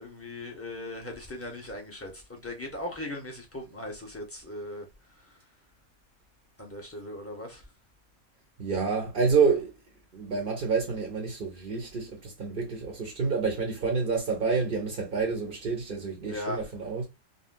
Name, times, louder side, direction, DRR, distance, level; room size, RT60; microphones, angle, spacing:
voice 1, 0.0-4.8 6.6-7.6 16.3-16.6, left 1 dB, 10° left, 0.8 m, -38 dB
voice 2, 8.6-9.7 10.1-17.0, right 5 dB, 45° right, 0.7 m, -28 dB
3.7 x 2.1 x 2.5 m
omnidirectional pair, 1.5 m